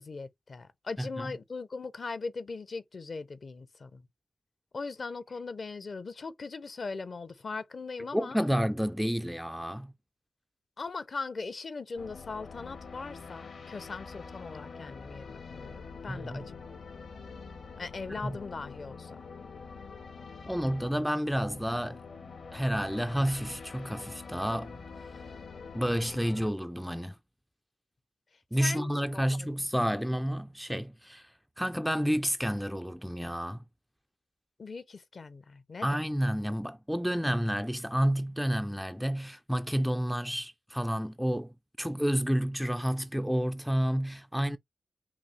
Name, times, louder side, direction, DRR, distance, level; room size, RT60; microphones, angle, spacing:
voice 1, 0.0-4.1 4.7-8.4 10.8-16.4 17.8-19.2 28.6-29.5 34.6-36.1, left 4 dB, 45° left, 0.8 m, -40 dB
voice 2, 1.0-1.3 8.1-9.9 16.1-16.5 18.2-18.4 20.5-22.0 22.5-24.8 25.7-27.1 28.5-31.3 31.6-33.6 35.8-44.6, equal, ahead, 0.4 m, -30 dB
sound 1, 12.0-26.5, left 5 dB, 70° left, 1.7 m, -45 dB
5.9 x 2.0 x 4.2 m
wide cardioid pair, 100°, 0 cm